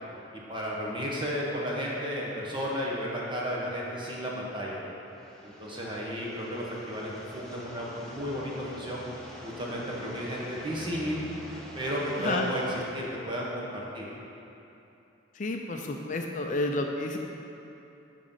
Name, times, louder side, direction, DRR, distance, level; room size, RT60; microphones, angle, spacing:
voice 1, 0.5-4.8 5.4-9.0 9.4-11.2 11.7-14.1, equal, 25° right, -4 dB, 1.3 m, -33 dB
sound 1, 5.1-13.1, equal, 5° left, 0.9 m, -46 dB
voice 2, 15.4-17.2, left 2 dB, 40° left, 2 dB, 0.5 m, -30 dB
7.6 x 5.3 x 5.7 m, 2.9 s
head